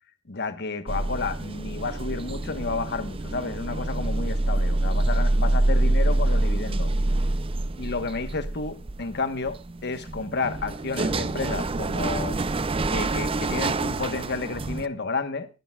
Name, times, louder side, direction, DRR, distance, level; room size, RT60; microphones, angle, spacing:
voice 1, 0.3-6.9 7.8-12.4 12.9-15.5, left 3 dB, 55° left, 1.2 m, -31 dB
sound 1, 0.9-14.9, right 2 dB, 25° right, 0.5 m, -26 dB
20.5 x 12.0 x 2.4 m
head